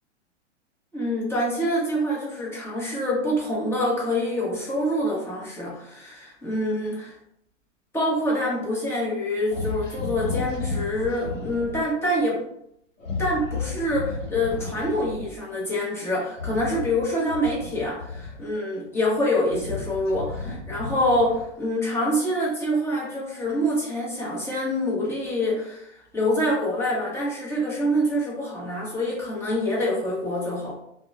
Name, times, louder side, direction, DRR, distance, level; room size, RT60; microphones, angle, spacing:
voice 1, 0.9-7.2 7.9-12.4 13.2-30.8, equal, 5° left, -6 dB, 0.8 m, -26 dB
sound 1, 9.5-11.8 13.0-15.3 16.3-18.6 19.2-21.6, left 4 dB, 85° left, 0.9 m, -33 dB
2.9 x 2.1 x 2.4 m, 0.74 s
figure-of-eight pair, 105°, 37 cm